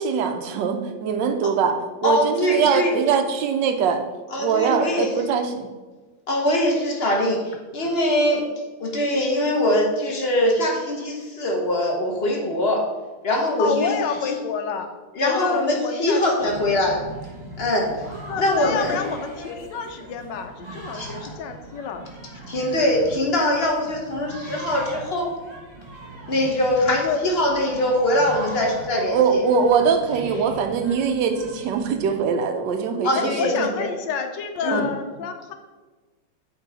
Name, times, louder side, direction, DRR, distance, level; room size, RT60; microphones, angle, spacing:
voice 1, 0.0-4.0 4.4-5.7 29.1-33.7 34.7-34.9, right 6 dB, 90° right, 6 dB, 1.4 m, -22 dB
voice 2, 2.0-2.9 4.3-5.1 6.3-8.5 8.8-12.9 13.2-13.9 14.2-14.3 15.1-17.0 17.6-18.1 18.4-19.0 20.9-21.1 22.5-25.3 26.3-29.4 33.0-33.9 34.6-34.9, left 1 dB, 40° left, 0 dB, 1.0 m, -22 dB
voice 3, 13.6-14.9 15.2-16.9 18.3-22.0 26.9-27.2 33.1-35.5, left 6 dB, 85° left, 6 dB, 1.4 m, -29 dB
sound 1, 16.4-32.2, right 2 dB, 35° right, 2.3 m, -39 dB
8.1 x 3.8 x 4.0 m, 1.3 s
omnidirectional pair, 1.9 m